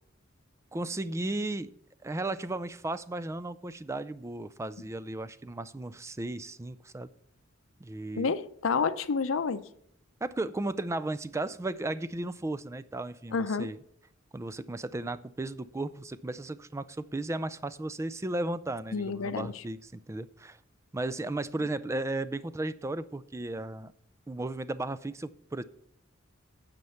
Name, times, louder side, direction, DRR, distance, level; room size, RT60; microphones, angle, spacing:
voice 1, 0.7-1.7 2.0-7.1 7.8-8.3 10.2-13.8 14.3-20.6 20.9-23.9 24.3-25.6, right 2 dB, 15° right, 0.4 m, -35 dB
voice 2, 8.2-9.6 13.3-13.7 18.9-19.5, left 5 dB, 85° left, 0.6 m, -29 dB
9.5 x 6.7 x 5.7 m
head